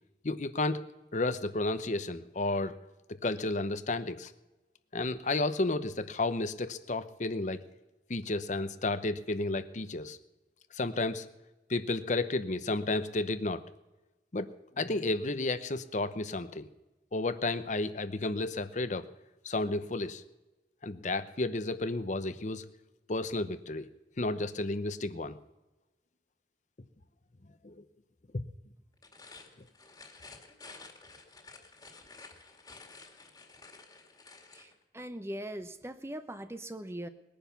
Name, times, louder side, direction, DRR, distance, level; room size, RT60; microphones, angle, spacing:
voice 1, 0.2-0.8 1.1-2.7 3.1-4.3 4.9-7.6 8.1-10.2 10.7-11.3 11.7-13.6 14.3-16.7 17.1-19.1 19.4-20.2 20.8-22.7 23.1-23.9 24.2-25.4 27.6-27.8 28.3-28.4, left 2 dB, 45° left, 11 dB, 0.8 m, -32 dB
sound 1, 28.9-34.7, left 3 dB, 20° left, 2.1 m, -52 dB
voice 2, 34.5-37.1, right 1 dB, 15° right, 10 dB, 0.8 m, -41 dB
20.0 x 10.5 x 7.0 m, 1.1 s
head